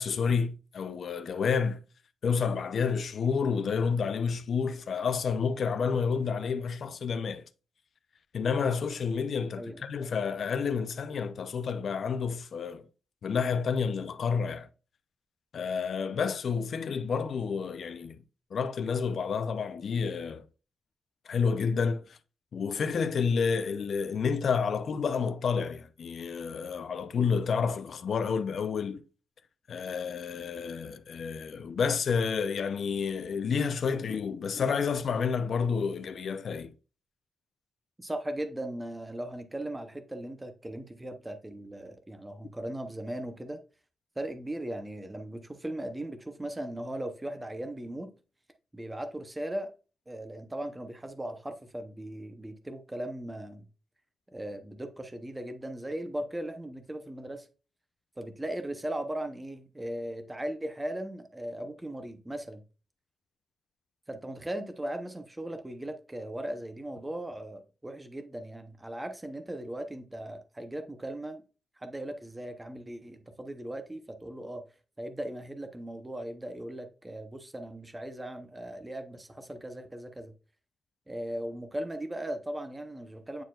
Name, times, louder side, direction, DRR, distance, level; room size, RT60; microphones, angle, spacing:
voice 1, 0.0-1.8 2.2-7.4 8.3-12.8 13.2-14.7 15.5-18.2 18.5-20.5 21.3-22.2 22.5-29.0 29.7-36.7, left 6 dB, 50° left, 0.6 m, -30 dB
voice 2, 38.0-43.6 44.2-48.1 48.7-49.7 50.1-53.7 54.3-57.5 58.2-62.6 64.1-71.4 71.8-74.6 75.0-80.3 81.1-83.4, right 1 dB, 10° right, 0.7 m, -38 dB
9.3 x 4.4 x 2.3 m
wide cardioid pair, 175°, 0 cm